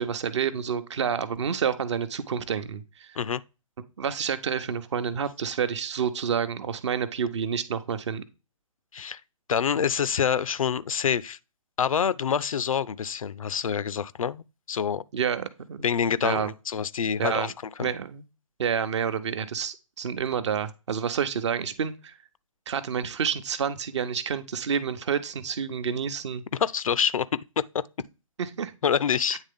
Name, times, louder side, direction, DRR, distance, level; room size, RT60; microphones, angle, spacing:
voice 1, 0.0-3.2 4.0-8.2 15.1-15.8 16.2-16.5 17.2-17.5 17.8-18.2 18.6-22.2 22.7-26.4 28.4-28.7, right 7 dB, 55° right, 0.8 m, -29 dB
voice 2, 9.5-11.4 11.8-15.0 15.8-17.5 17.8-17.9 26.6-27.3 27.7-27.8 28.8-29.4, left 7 dB, 75° left, 0.4 m, -26 dB
9.0 x 3.4 x 3.6 m
figure-of-eight pair, 135°, 18 cm